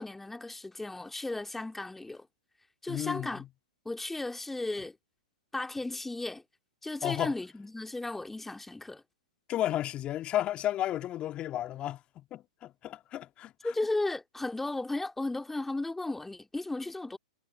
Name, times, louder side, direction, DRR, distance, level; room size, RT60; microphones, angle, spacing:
voice 1, 0.0-2.3 2.8-3.4 3.8-5.0 5.5-6.4 6.8-9.0 13.6-17.2, left 2 dB, 5° left, 2.6 m, -35 dB
voice 2, 2.9-3.5 7.0-7.3 9.5-13.5, left 13 dB, 30° left, 2.0 m, -33 dB
figure-of-eight pair, 110°, 4 cm